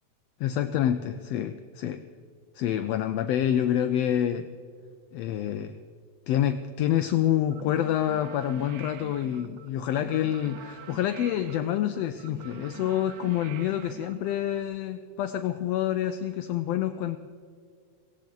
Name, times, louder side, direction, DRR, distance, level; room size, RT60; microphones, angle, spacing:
voice 1, 0.4-2.0 2.6-4.5 5.1-5.8 6.3-17.2, left 11 dB, 85° left, 10 dB, 1.5 m, -27 dB
sound 1, 7.5-14.6, right 11 dB, 85° right, 2.0 m, -46 dB
17.5 x 16.5 x 3.9 m, 2.2 s
omnidirectional pair, 3.4 m